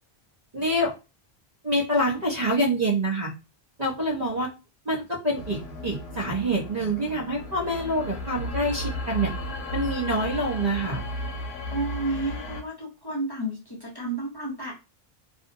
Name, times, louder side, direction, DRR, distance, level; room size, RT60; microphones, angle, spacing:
voice 1, 0.5-0.9 1.6-3.3 3.8-4.5 4.9-9.3 9.7-11.0, right 1 dB, 45° right, -2 dB, 0.7 m, -26 dB
sound 1, 5.3-12.6, left 1 dB, 85° left, 0.8 m, -34 dB
voice 2, 11.7-14.8, right 2 dB, 30° left, -4 dB, 0.6 m, -31 dB
2.5 x 2.0 x 2.6 m, 0.29 s
omnidirectional pair, 1.1 m